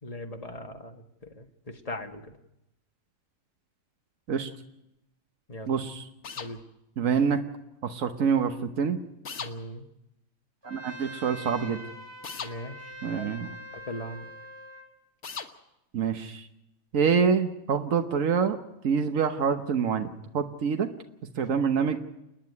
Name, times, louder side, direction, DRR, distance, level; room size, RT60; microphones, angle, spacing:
voice 1, 0.0-2.3 5.5-5.8 6.4-6.6 9.4-9.8 12.4-13.3 13.7-14.3, left 1 dB, 30° left, 4 dB, 1.6 m, -40 dB
voice 2, 5.7-6.1 7.0-7.4 7.8-9.0 10.6-11.8 13.0-13.5 15.9-16.5 16.9-18.6 18.8-20.9 21.4-22.0, right 6 dB, 80° right, 6 dB, 1.5 m, -26 dB
sound 1, 6.2-6.5 9.3-9.5 12.2-12.5 15.2-15.5, left 6 dB, 80° left, 1.7 m, -37 dB
Trumpet, 10.6-14.9, equal, 20° right, 2.1 m, -44 dB
29.0 x 10.0 x 9.6 m, 0.87 s
omnidirectional pair, 1.4 m